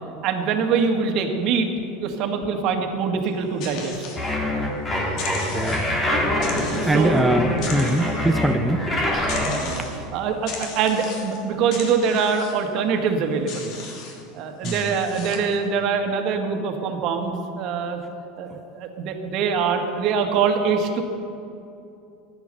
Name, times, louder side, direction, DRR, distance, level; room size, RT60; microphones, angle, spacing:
voice 1, 0.2-1.7 2.0-3.9 6.9-7.2 9.4-9.8 10.1-13.7 14.3-18.0 18.4-21.0, right 5 dB, 55° right, 5 dB, 1.8 m, -24 dB
sound 1, 3.2-4.7 5.1-6.0 6.4-7.2 7.5-8.5 9.3-10.0 10.4-11.4 11.7-12.7 13.5-14.2 14.6-15.6, left 4 dB, 55° left, 2.9 m, -37 dB
sound 2, 4.2-9.6, left 1 dB, 25° left, 3.9 m, -24 dB
voice 2, 5.5-5.8 6.8-8.9 9.8-9.9 14.6-15.0 18.5-18.6, right 1 dB, 5° right, 5 dB, 0.7 m, -23 dB
15.0 x 10.5 x 6.8 m, 2.7 s
hypercardioid pair, 100°, 0 cm